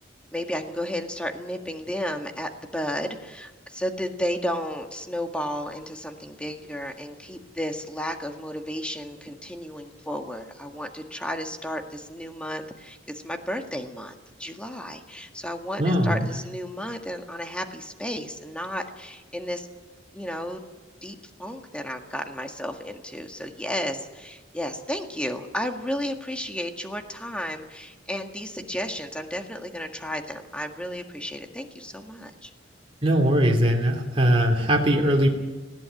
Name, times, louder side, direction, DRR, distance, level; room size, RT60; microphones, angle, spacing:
voice 1, 0.3-14.1 14.4-19.7 20.1-20.7 21.0-32.5, equal, 5° left, 4 dB, 1.9 m, -33 dB
voice 2, 15.8-16.3 33.0-35.3, equal, 30° right, -1 dB, 2.9 m, -20 dB
20.0 x 16.5 x 9.1 m, 1.2 s
head